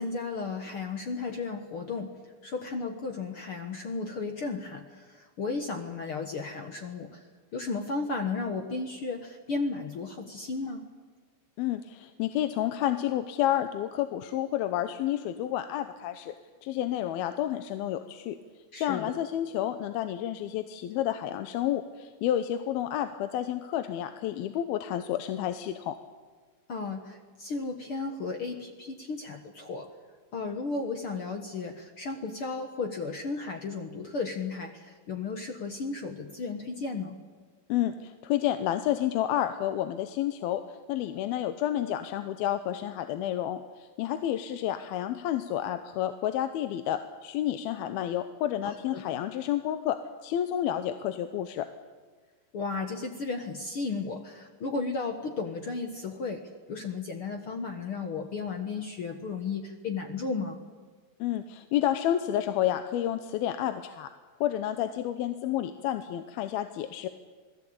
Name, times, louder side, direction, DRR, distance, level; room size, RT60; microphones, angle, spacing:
voice 1, 0.0-2.1 2.4-7.2 7.5-10.8 18.7-19.1 26.7-29.9 30.3-37.2 48.6-49.0 52.5-56.4 56.7-60.6, left 4 dB, 55° left, 5 dB, 1.6 m, -34 dB
voice 2, 11.6-16.3 16.6-18.4 18.8-26.0 37.7-40.6 40.9-51.7 61.2-64.1 64.4-67.1, left 11 dB, 80° left, 9 dB, 2.8 m, -30 dB
27.5 x 18.5 x 8.7 m, 1.4 s
omnidirectional pair, 4.3 m